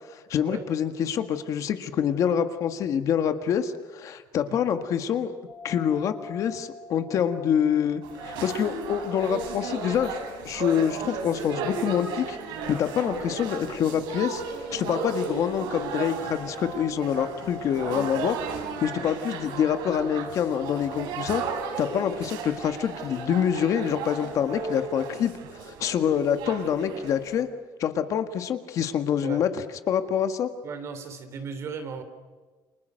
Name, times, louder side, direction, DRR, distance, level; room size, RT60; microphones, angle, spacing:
voice 1, 0.1-5.3 5.6-10.2 10.4-12.4 12.7-14.4 14.7-18.4 18.8-21.4 21.8-25.3 25.6-27.5 27.8-29.5 29.9-30.5, left 8 dB, 45° left, 9 dB, 1.7 m, -26 dB
sound 1, 5.5-25.1, left 3 dB, 20° left, 2.1 m, -45 dB
sound 2, 8.0-27.4, right 5 dB, 75° right, 5.2 m, -35 dB
voice 2, 30.6-32.0, right 5 dB, 35° right, 8 dB, 3.7 m, -36 dB
30.0 x 28.5 x 6.5 m, 1.4 s
cardioid pair, 175°, 8 cm